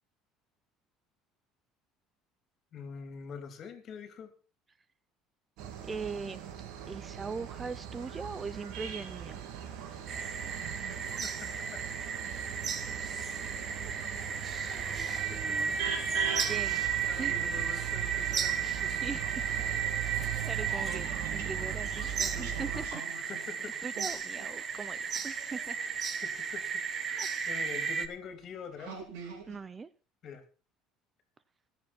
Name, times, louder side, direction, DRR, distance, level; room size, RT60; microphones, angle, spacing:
voice 1, 2.7-4.3 11.2-11.8 15.3-15.9 17.1-19.2 21.1-21.2 23.3-23.7 26.2-26.8 27.1-29.0 30.2-30.4, left 6 dB, 45° left, 8 dB, 2.9 m, -45 dB
sound 1, 5.6-22.9, right 9 dB, 75° right, 2.5 m, -39 dB
voice 2, 5.9-6.4 6.9-9.4 14.7-15.7 16.5-16.8 17.2-17.4 19.0-19.4 20.0-23.0 23.8-25.8 27.2-27.5 29.5-29.9, right 4 dB, 25° right, 17 dB, 0.6 m, -41 dB
sound 2, 10.1-28.1, right 7 dB, 40° right, 1.3 m, -34 dB
sound 3, 16.2-18.9 19.2-26.0 26.9-27.0 27.6-27.8 28.3-28.4 28.8-29.6, right 5 dB, 90° right, 4.2 m, -47 dB
21.5 x 7.5 x 4.4 m, 0.35 s
cardioid pair, 115°, 0 cm